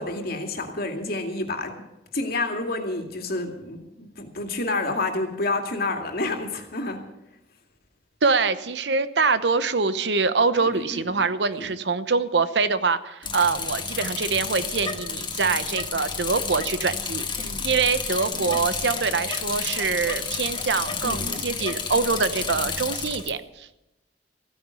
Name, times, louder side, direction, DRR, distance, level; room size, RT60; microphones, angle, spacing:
voice 1, 0.0-1.8 2.1-7.0 10.6-11.2 11.6-11.7 17.4-17.7 18.3-18.6 21.0-21.4, left 2 dB, 60° left, 4 dB, 2.4 m, -29 dB
voice 2, 8.2-23.7, right 4 dB, 80° right, 12 dB, 1.0 m, -24 dB
Bicycle, 13.2-23.3, left 5 dB, 30° left, 1.5 m, -31 dB
15.5 x 9.7 x 8.2 m, 0.93 s
head